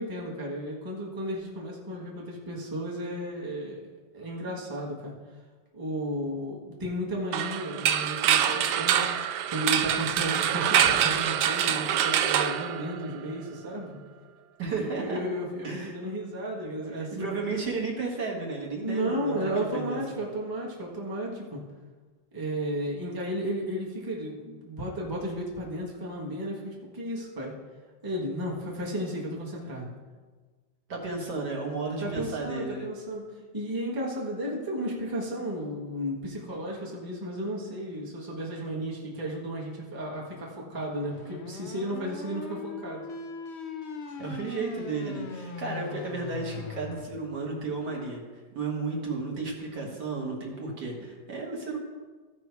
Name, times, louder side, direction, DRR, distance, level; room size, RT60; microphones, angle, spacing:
voice 1, 0.0-3.8 4.1-5.1 5.7-9.0 9.5-14.0 14.7-17.6 18.8-21.6 22.3-27.5 28.0-29.9 32.0-33.3 33.5-43.1 44.1-44.2, equal, 10° right, -3 dB, 1.4 m, -33 dB
sound 1, 7.3-13.3, right 9 dB, 75° right, 1.0 m, -25 dB
voice 2, 14.6-15.2 15.6-16.0 17.0-20.2 30.9-32.9 44.2-48.2 48.5-51.8, right 3 dB, 55° right, -1 dB, 2.2 m, -33 dB
sound 2, 41.1-47.0, left 5 dB, 65° left, 0.6 m, -40 dB
15.5 x 5.3 x 4.7 m, 1.4 s
omnidirectional pair, 2.1 m